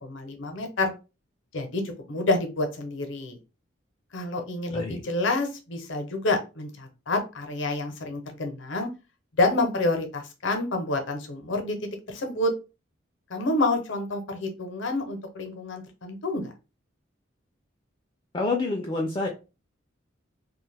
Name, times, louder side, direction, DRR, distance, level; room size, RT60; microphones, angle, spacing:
voice 1, 0.0-0.9 1.5-3.4 4.1-8.9 9.4-11.8 12.1-12.5 13.3-16.5, left 2 dB, 70° left, 5 dB, 0.7 m, -28 dB
voice 2, 4.7-5.0 18.3-19.3, left 3 dB, 25° left, 1 dB, 0.4 m, -27 dB
2.4 x 2.2 x 3.3 m, 0.30 s
head